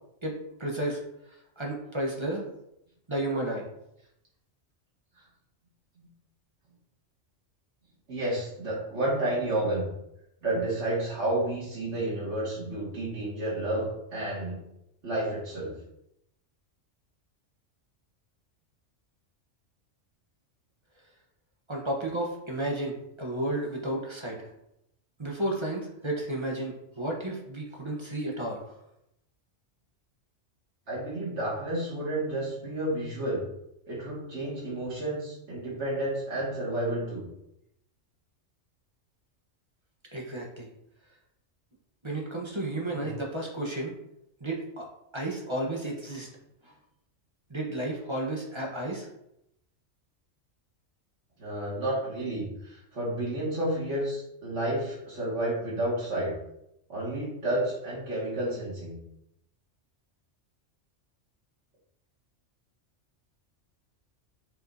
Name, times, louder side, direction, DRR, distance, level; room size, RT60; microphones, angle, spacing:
voice 1, 0.2-1.0 1.3-2.4 3.1-3.6 21.7-24.4 25.2-28.7 40.1-40.7 42.0-43.9 44.4-44.9 45.1-46.3 46.6-46.7 47.5-49.1, right 1 dB, 25° right, -1 dB, 1.2 m, -32 dB
voice 2, 8.1-9.9 10.4-14.6 15.0-15.7 30.9-33.4 33.9-37.2 42.9-43.1 51.4-56.3 56.9-59.0, right 1 dB, 65° right, -7 dB, 2.5 m, -31 dB
7.2 x 4.9 x 2.8 m, 0.82 s
omnidirectional pair, 1.3 m